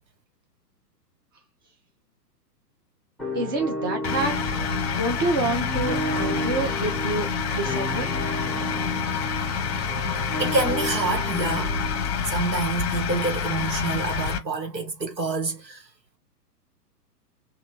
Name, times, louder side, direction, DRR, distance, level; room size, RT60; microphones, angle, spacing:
sound 1, 3.2-12.1, right 1 dB, ahead, 0.9 m, -32 dB
voice 1, 3.3-4.3 5.0-8.1, right 2 dB, 15° right, 0.4 m, -28 dB
sound 2, 4.0-14.4, left 7 dB, 40° left, 0.7 m, -28 dB
voice 2, 10.4-11.8 12.3-15.8, right 3 dB, 90° right, 1.3 m, -27 dB
3.2 x 2.4 x 2.8 m
figure-of-eight pair, 115°, 49 cm